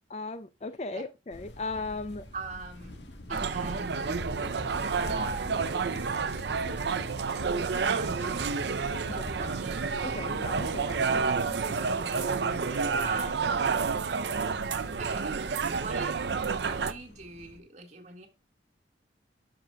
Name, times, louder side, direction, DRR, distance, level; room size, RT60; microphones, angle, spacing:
voice 1, 0.1-2.3 9.2-9.3 10.0-11.2 11.6-11.8 12.7-13.1, left 3 dB, 35° left, 0.5 m, -37 dB
sound 1, 1.3-17.6, equal, 80° left, 1.5 m, -48 dB
voice 2, 2.3-4.1 4.8-6.0 6.2-7.3 7.7-8.6 9.1-9.8 11.6-12.6 13.0-13.7 15.0-15.4 15.7-18.3, right 3 dB, 40° right, 1.8 m, -42 dB
sound 2, 3.3-16.9, right 5 dB, 70° right, 0.5 m, -30 dB
sound 3, 4.2-7.7 8.0-9.5 10.7-11.0, left 2 dB, 65° left, 1.0 m, -43 dB
12.0 x 5.9 x 2.3 m
head